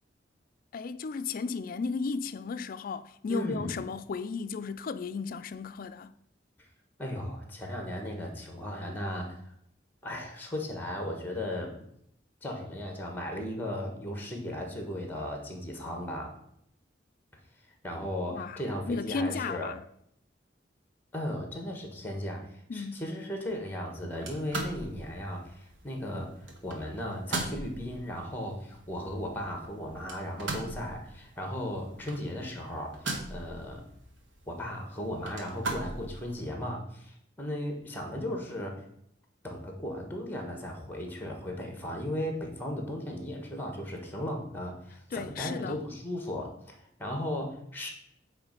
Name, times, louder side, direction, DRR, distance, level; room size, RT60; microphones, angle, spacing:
voice 1, 0.7-6.1 18.3-18.6 18.9-19.8 22.7-23.0 45.1-45.8, left 4 dB, 50° left, 0.4 m, -34 dB
voice 2, 3.3-3.7 7.0-9.4 10.0-11.7 12.4-16.3 17.8-19.7 21.1-33.8 34.5-38.8 39.4-47.9, left 1 dB, 10° left, 1.3 m, -36 dB
sound 1, 24.1-36.4, right 2 dB, 80° right, 1.3 m, -41 dB
8.3 x 3.2 x 5.2 m
head